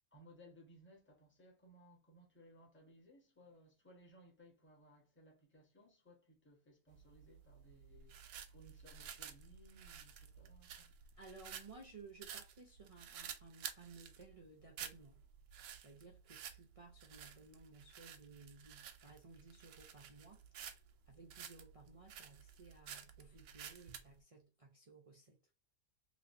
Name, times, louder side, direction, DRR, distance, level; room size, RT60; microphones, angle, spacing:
voice 1, 0.1-10.9, equal, 10° left, 0.9 m, -63 dB
sound 1, 6.9-24.1, right 8 dB, 90° right, 1.1 m, -52 dB
voice 2, 11.2-15.2 15.8-20.4 21.1-25.4, right 3 dB, 50° right, 0.4 m, -58 dB
3.1 x 3.0 x 2.6 m
omnidirectional pair, 1.6 m